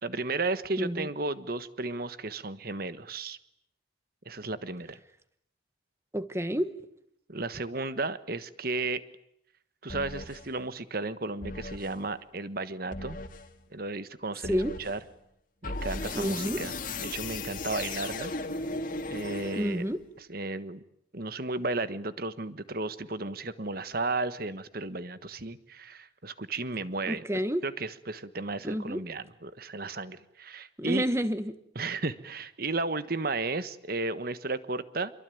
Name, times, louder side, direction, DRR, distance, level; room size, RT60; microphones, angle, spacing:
voice 1, 0.0-3.4 4.2-5.0 7.3-9.0 9.8-13.2 13.7-15.0 15.6-16.7 17.0-18.3 19.1-19.8 20.3-20.8 21.1-27.2 27.6-31.1 31.7-35.1, right 3 dB, 50° right, 13 dB, 1.4 m, -34 dB
voice 2, 0.8-1.1 6.1-6.7 14.4-14.7 16.1-16.6 19.5-20.0 27.1-27.6 28.6-29.0 30.8-31.6, equal, 15° right, 12 dB, 1.3 m, -29 dB
sound 1, 9.9-10.5 11.4-12.0 12.9-13.5 14.4-15.0 15.6-20.0, left 3 dB, 45° left, 2.2 m, -36 dB
27.0 x 23.5 x 9.4 m, 0.76 s
head